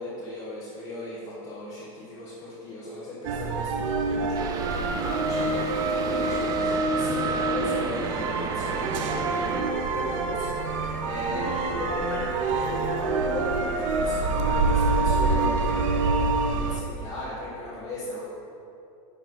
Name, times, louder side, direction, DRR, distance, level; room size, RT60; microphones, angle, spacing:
voice 1, 0.0-18.2, left 2 dB, 40° left, -9 dB, 1.6 m, -37 dB
sound 1, 3.2-16.8, right 3 dB, 70° right, 0.7 m, -26 dB
sound 2, 4.3-9.6, right 4 dB, 20° right, 0.5 m, -34 dB
sound 3, 9.3-16.0, left 1 dB, 15° left, 1.2 m, -39 dB
10.5 x 4.0 x 4.0 m, 2.7 s
supercardioid pair, 145°, 17 cm